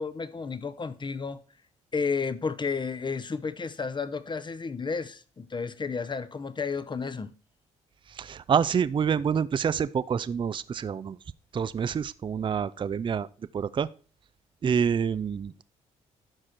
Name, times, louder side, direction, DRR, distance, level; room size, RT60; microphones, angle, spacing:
voice 1, 0.0-1.4 1.9-7.3, left 5 dB, 30° left, 0.8 m, -32 dB
voice 2, 8.1-11.2 11.5-13.3 13.5-13.9 14.6-15.5, right 7 dB, 30° right, 0.4 m, -27 dB
12.0 x 4.9 x 4.4 m
supercardioid pair, 55°, 15 cm